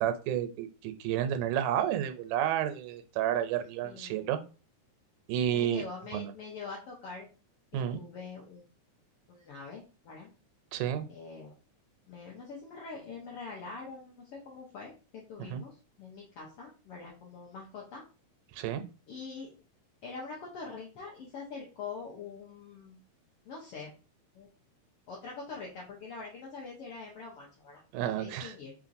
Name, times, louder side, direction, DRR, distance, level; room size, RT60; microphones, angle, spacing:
voice 1, 0.0-4.4 5.3-5.8 6.1-6.3 7.7-8.0 10.7-11.1 15.5-15.6 18.5-18.8 27.9-28.5, right 10 dB, 90° right, 8 dB, 2.1 m, -31 dB
voice 2, 3.8-4.4 5.5-7.3 7.7-8.7 9.3-10.3 11.1-11.6 12.1-18.0 19.1-19.5 20.0-23.0 23.4-24.0 24.3-24.5 25.1-27.9 28.1-28.7, left 4 dB, 75° left, -3 dB, 1.3 m, -44 dB
4.8 x 2.9 x 2.6 m, 0.33 s
omnidirectional pair, 3.6 m